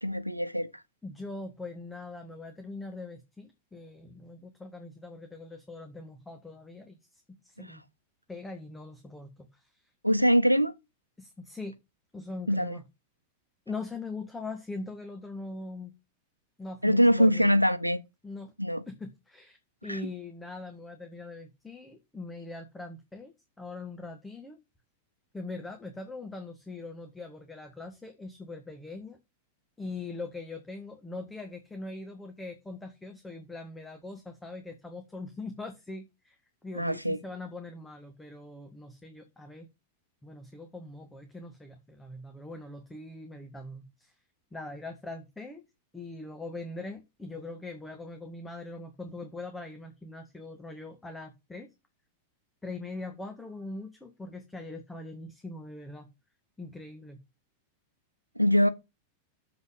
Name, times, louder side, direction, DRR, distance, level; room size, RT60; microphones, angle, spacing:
voice 1, 0.0-0.8 7.6-7.8 10.0-10.7 12.5-12.8 16.8-18.0 18.6-18.8 19.9-20.0 36.7-37.2 58.3-58.7, equal, 90° right, 0.9 m, -23 dB
voice 2, 1.0-7.8 8.3-9.8 11.2-11.7 12.1-12.8 13.7-15.9 16.6-17.5 18.2-18.5 18.9-24.6 25.3-29.2 29.8-39.7 40.2-44.1 44.5-45.6 45.9-51.7 52.6-56.1 56.6-57.2, left 3 dB, 10° left, 1.8 m, -42 dB
7.3 x 6.1 x 7.4 m
figure-of-eight pair, 90°, 0 cm